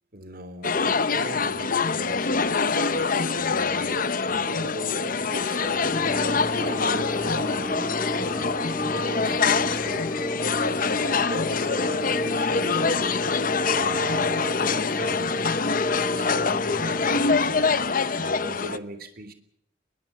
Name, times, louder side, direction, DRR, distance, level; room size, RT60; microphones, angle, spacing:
voice 1, 0.1-6.0 6.5-13.1 13.7-15.5 16.1-19.3, right 1 dB, 50° right, 10 dB, 3.3 m, -39 dB
sound 1, 0.6-18.8, left 5 dB, 45° left, 0.9 m, -25 dB
sound 2, 5.9-17.2, equal, 15° left, 1.8 m, -32 dB
21.5 x 21.5 x 7.0 m, 0.72 s
head